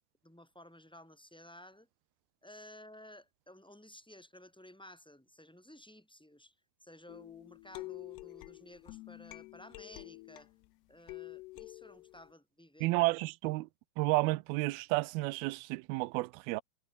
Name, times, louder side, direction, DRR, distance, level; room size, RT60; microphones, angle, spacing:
voice 1, 0.2-1.9 2.4-10.5 10.9-12.9, left 1 dB, ahead, 4.5 m, -55 dB
sound 1, 7.1-10.7 11.1-12.3, left 21 dB, 85° left, 2.7 m, -48 dB
voice 2, 12.8-13.7 14.0-16.6, right 21 dB, 80° right, 2.4 m, -31 dB
omnidirectional pair, 4.7 m